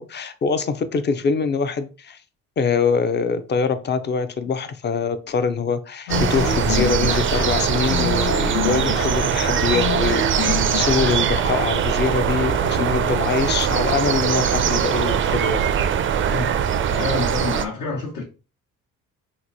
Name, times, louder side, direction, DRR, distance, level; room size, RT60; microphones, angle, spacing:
voice 1, 0.0-2.2 2.6-15.7, left 5 dB, 30° left, 0.5 m, -24 dB
sound 1, 6.1-11.4, left 7 dB, 85° left, 0.8 m, -28 dB
sound 2, 6.1-17.6, right 8 dB, 40° right, 0.4 m, -21 dB
voice 2, 16.9-18.2, left 4 dB, 70° left, 1.2 m, -28 dB
2.9 x 2.2 x 4.0 m
cardioid pair, 85°, 33 cm